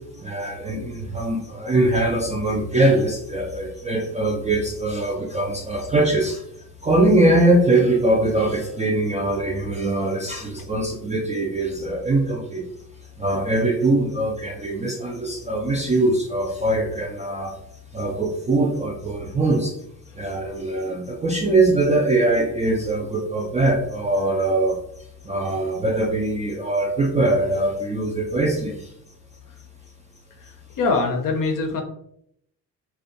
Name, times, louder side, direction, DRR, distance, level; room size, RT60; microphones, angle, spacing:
voice 1, 0.1-12.6 13.2-17.5 17.9-19.8 20.1-24.8 25.2-28.9, right 2 dB, 15° right, -1 dB, 0.3 m, -22 dB
voice 2, 30.8-31.8, left 3 dB, 45° left, 3 dB, 0.6 m, -22 dB
2.5 x 2.2 x 2.5 m, 0.73 s
hypercardioid pair, 40°, 49 cm